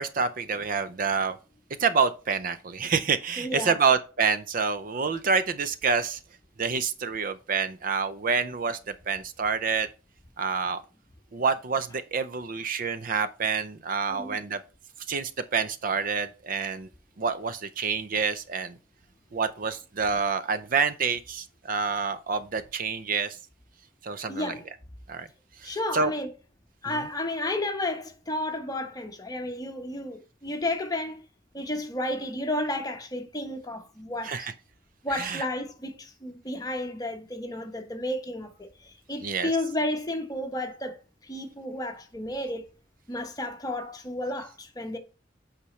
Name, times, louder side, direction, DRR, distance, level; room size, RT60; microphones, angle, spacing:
voice 1, 0.0-1.4 1.8-6.2 6.6-9.9 10.4-10.8 11.3-14.6 15.1-16.9 17.2-18.8 19.3-23.4 24.0-24.5 25.1-25.3 25.6-26.1 26.9-27.1 34.2-34.5 35.1-35.4 39.2-39.5, right 5 dB, 50° right, 0.5 m, -27 dB
voice 2, 3.4-3.7 14.1-14.4 24.3-24.6 25.6-26.3 26.8-31.2 31.5-34.5 35.0-41.0 41.2-42.7 43.1-45.0, left 1 dB, 20° left, 1.1 m, -32 dB
8.4 x 5.0 x 3.2 m
head